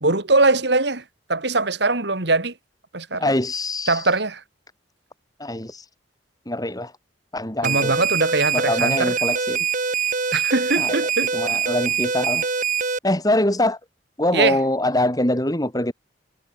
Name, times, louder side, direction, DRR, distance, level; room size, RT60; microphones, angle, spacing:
voice 1, 0.0-1.0 1.3-2.5 2.9-3.3 3.9-4.4 7.6-9.1 10.3-11.3 14.3-14.6, right 3 dB, 65° right, 2.7 m, -21 dB
voice 2, 3.2-4.1 5.4-5.9 6.5-6.9 7.3-7.9 8.5-9.6 10.8-11.0 11.3-12.5 13.0-13.8 14.2-15.9, left 1 dB, 20° left, 4.5 m, -23 dB
sound 1, 7.6-13.0, right 6 dB, 45° right, 2.9 m, -23 dB
head